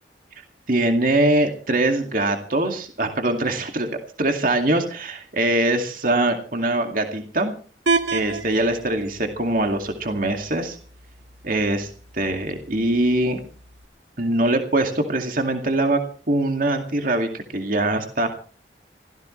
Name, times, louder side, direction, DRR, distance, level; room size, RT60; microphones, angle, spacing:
voice 1, 0.7-7.5 8.1-10.8 11.4-13.4 14.2-16.0 16.3-18.3, right 1 dB, 50° right, 4 dB, 2.2 m, -22 dB
sound 1, 7.9-13.9, right 4 dB, 90° right, 1.9 m, -31 dB
25.0 x 17.0 x 3.2 m, 0.41 s
head